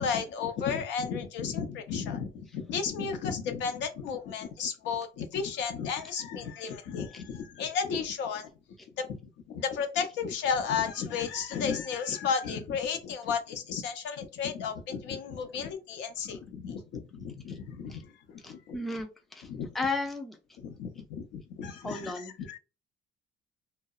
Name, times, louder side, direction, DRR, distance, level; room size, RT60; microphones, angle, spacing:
voice 1, 0.0-8.5 9.0-9.2 9.5-18.8 19.5-19.7 20.6-22.6, left 6 dB, 75° left, 7 dB, 0.6 m, -33 dB
voice 2, 18.4-19.5 19.7-20.4 21.8-22.3, left 3 dB, ahead, 4 dB, 0.3 m, -34 dB
2.7 x 2.0 x 2.3 m, 0.30 s
cardioid pair, 145°, 19 cm